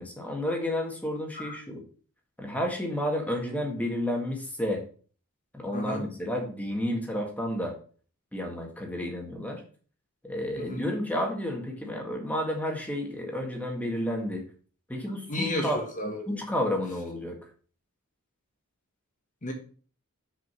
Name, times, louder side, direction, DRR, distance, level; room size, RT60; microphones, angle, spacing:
voice 1, 0.0-1.8 2.4-4.8 5.5-7.7 8.3-9.6 10.2-14.4 14.9-15.8 16.3-17.4, left 1 dB, 5° left, 1.8 m, -31 dB
voice 2, 5.7-6.0 10.6-10.9 15.3-16.4 19.4-19.5, left 1 dB, 35° left, 1.3 m, -33 dB
6.3 x 5.1 x 6.1 m
head